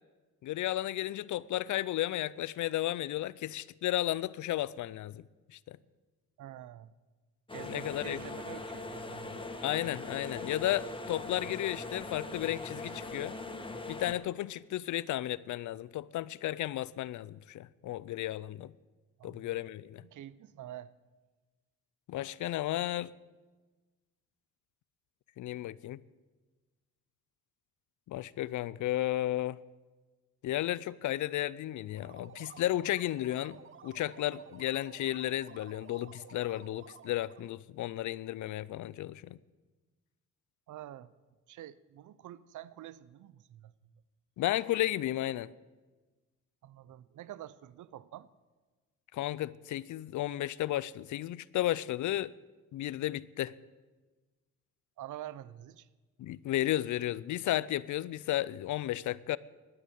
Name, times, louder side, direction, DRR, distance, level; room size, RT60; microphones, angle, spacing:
voice 1, 0.4-5.2 5.5-5.8 7.7-8.2 9.6-13.4 13.9-18.7 19.2-20.0 22.1-23.1 25.4-26.0 28.1-29.6 30.4-39.4 44.4-45.5 49.1-52.3 52.7-53.5 56.2-59.4, left 14 dB, 80° left, 0.5 m, -33 dB
voice 2, 6.4-6.9 7.5-9.4 19.2-19.6 20.0-20.9 40.7-41.1 41.5-43.7 46.6-48.3 55.0-55.9, right 12 dB, 85° right, 0.6 m, -47 dB
sound 1, 7.5-14.1, left 2 dB, 15° left, 1.5 m, -41 dB
sound 2, 31.8-37.5, right 7 dB, 45° right, 0.7 m, -53 dB
11.0 x 10.0 x 8.8 m
cardioid pair, 85°, 30 cm